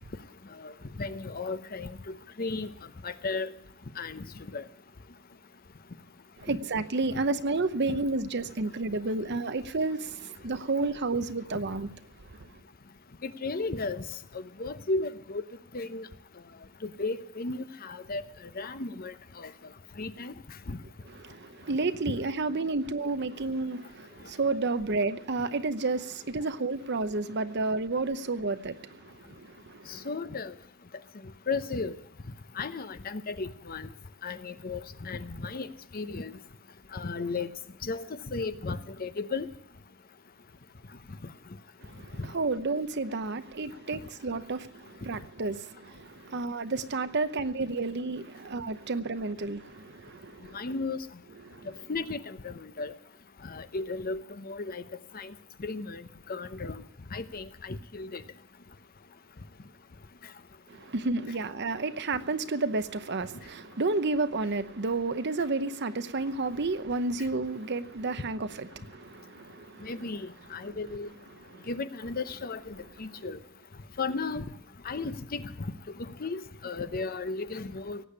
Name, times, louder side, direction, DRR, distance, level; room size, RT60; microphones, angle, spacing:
voice 1, 1.0-2.0 2.4-2.7 3.0-3.5 4.0-4.2 4.5-4.6 6.5-6.6 7.9-8.0 13.2-14.0 14.3-15.4 15.7-16.1 16.8-18.2 18.6-19.5 20.0-20.3 20.7-20.8 29.9-30.5 31.5-32.0 32.6-33.9 34.2-35.7 35.9-36.3 36.9-37.5 37.8-38.0 38.3-39.5 43.9-44.0 50.5-51.0 51.9-52.9 53.4-54.8 55.1-55.3 55.6-56.0 56.3-56.8 57.1-58.2 69.8-71.1 71.7-73.4 74.0-74.5 74.8-75.7 76.0-78.0, left 3 dB, 45° left, 0.8 m, -34 dB
voice 2, 6.4-11.9 21.1-30.0 41.9-50.6 51.5-51.7 60.7-69.9 71.5-71.7, right 3 dB, 60° right, 0.8 m, -31 dB
17.0 x 8.6 x 9.7 m
head